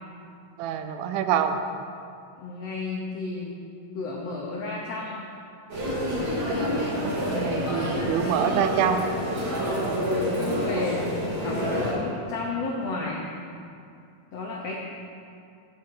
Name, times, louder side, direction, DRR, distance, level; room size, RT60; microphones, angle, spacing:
voice 1, 0.6-1.6 7.3-9.0, right 8 dB, 85° right, 7 dB, 2.5 m, -25 dB
voice 2, 2.4-3.6 3.9-5.2 8.2-8.5 9.7-13.2 14.3-14.7, left 3 dB, 85° left, -2 dB, 1.4 m, -33 dB
sound 1, 5.7-11.9, equal, 40° right, 2.2 m, -28 dB
8.6 x 5.7 x 7.6 m, 2.5 s
omnidirectional pair, 4.1 m